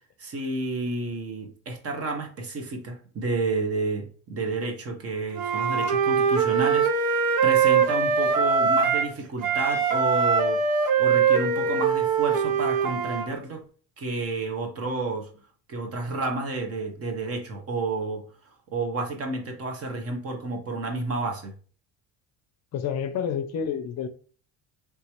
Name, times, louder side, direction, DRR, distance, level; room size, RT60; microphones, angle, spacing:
voice 1, 0.2-13.6 14.0-15.3 15.7-18.2 18.7-21.5, right 3 dB, 40° right, 1.1 m, -30 dB
Wind instrument woodwind instrument, 5.3-9.1 9.4-13.3, right 6 dB, 70° right, 0.7 m, -22 dB
voice 2, 22.7-24.1, left 7 dB, 45° left, 0.5 m, -29 dB
3.5 x 2.9 x 2.9 m
cardioid pair, 115°, 36 cm